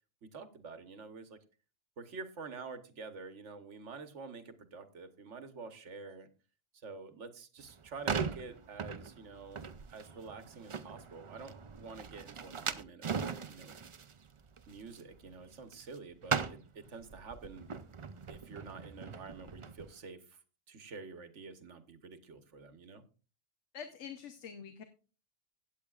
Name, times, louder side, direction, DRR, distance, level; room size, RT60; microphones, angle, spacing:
voice 1, 0.2-1.4 2.0-6.3 6.7-13.8 14.7-17.7 18.3-20.4 20.7-23.0, right 4 dB, 80° right, 10 dB, 1.5 m, -48 dB
sound 1, 7.6-16.0 16.2-19.9, right 6 dB, 40° right, 0.4 m, -40 dB
voice 2, 23.7-24.8, left 7 dB, 80° left, 8 dB, 1.2 m, -45 dB
16.5 x 8.4 x 2.4 m, 0.35 s
omnidirectional pair, 1.2 m